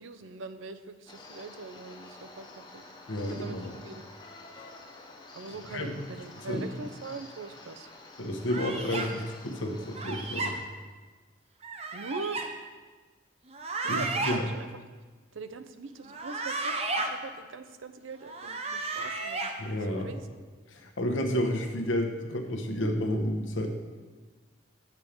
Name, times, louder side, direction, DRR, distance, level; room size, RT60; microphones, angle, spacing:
voice 1, 0.0-2.8 3.3-4.1 5.3-7.9 11.9-12.4 13.8-14.7 15.3-19.5 19.8-20.3, right 3 dB, 85° right, 10 dB, 0.6 m, -42 dB
sound 1, 1.1-10.6, left 2 dB, 20° left, 0.8 m, -49 dB
voice 2, 3.1-3.7 5.7-6.0 6.5-6.7 8.2-10.5 13.9-14.5 19.6-20.1 20.7-23.7, left 1 dB, 85° left, 3 dB, 1.1 m, -31 dB
sound 2, 8.5-9.1 9.9-10.5 11.6-12.5 13.5-14.4 16.0-17.1 18.2-19.5, right 3 dB, 30° right, 0.6 m, -33 dB
7.3 x 7.3 x 5.0 m, 1.4 s
head